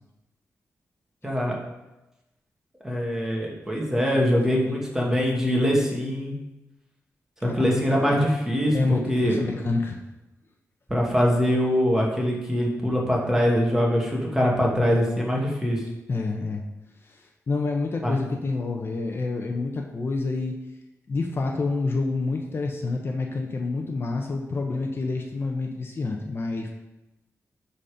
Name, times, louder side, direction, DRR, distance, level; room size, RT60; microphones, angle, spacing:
voice 1, 1.2-1.6 2.8-6.3 7.4-9.6 10.9-15.8 18.0-18.2, equal, 10° right, -3 dB, 2.2 m, -23 dB
voice 2, 8.7-10.0 16.1-16.6 17.1-17.2 17.5-20.6 21.1-26.7, left 3 dB, 45° left, 2 dB, 0.9 m, -28 dB
12.0 x 4.4 x 5.1 m, 1.0 s
wide cardioid pair, 110°, 5 cm